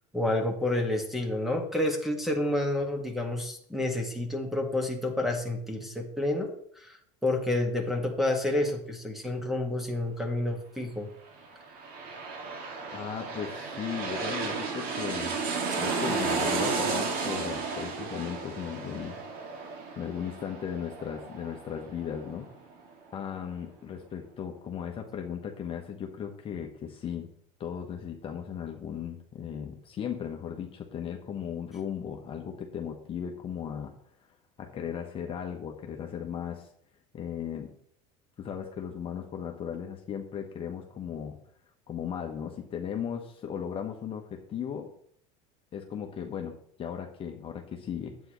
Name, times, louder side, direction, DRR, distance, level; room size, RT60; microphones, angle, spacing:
voice 1, 0.1-7.0 7.2-11.1, left 1 dB, ahead, 3 dB, 1.8 m, -29 dB
sound 1, 11.4-22.8 23.2-23.3, right 4 dB, 65° right, 2.1 m, -33 dB
voice 2, 12.9-15.4 15.8-19.2 20.0-22.5 23.1-27.3 27.6-33.9 34.6-36.7 37.1-37.7 38.4-41.4 41.9-44.9 45.7-48.2, left 8 dB, 35° left, 2 dB, 1.1 m, -36 dB
9.5 x 8.2 x 3.1 m, 0.66 s
supercardioid pair, 115°, 17 cm